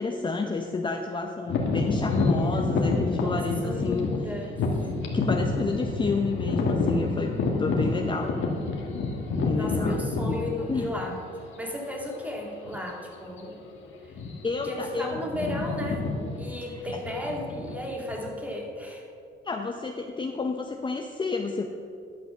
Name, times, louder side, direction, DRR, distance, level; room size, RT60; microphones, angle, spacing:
voice 1, 0.0-4.1 4.8-8.3 9.3-10.4 10.7-10.9 14.4-15.2 19.4-21.7, left 4 dB, 25° left, 3 dB, 0.7 m, -30 dB
sound 1, 1.5-11.3 11.9-12.0 12.7-12.9 13.2-13.4 14.1-14.6 14.9-18.3, left 3 dB, 75° left, 1.5 m, -28 dB
voice 2, 3.2-4.6 9.5-13.6 14.0-14.2 14.6-16.1 16.4-19.1, left 1 dB, 5° right, -1 dB, 2.2 m, -34 dB
11.0 x 6.0 x 6.0 m, 2.4 s
cardioid pair, 90°, 20 cm